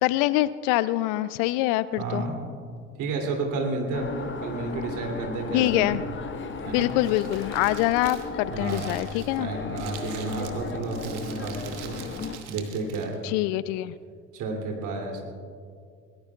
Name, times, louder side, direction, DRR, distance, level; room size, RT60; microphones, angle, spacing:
voice 1, 0.0-2.2 5.5-6.0 6.7-9.5 13.2-13.9, left 16 dB, 55° left, 18 dB, 0.5 m, -25 dB
voice 2, 2.0-2.4 3.0-6.0 6.6-6.9 8.5-8.9 9.4-12.0 12.5-13.2 14.3-15.2, right 3 dB, 55° right, 1 dB, 2.9 m, -31 dB
sound 1, 3.9-12.4, left 4 dB, 30° left, 1.2 m, -36 dB
Crumpling crinkling, 6.5-13.2, right 9 dB, 70° right, 1.4 m, -45 dB
21.5 x 18.5 x 2.4 m, 2.2 s
figure-of-eight pair, 55°, 36 cm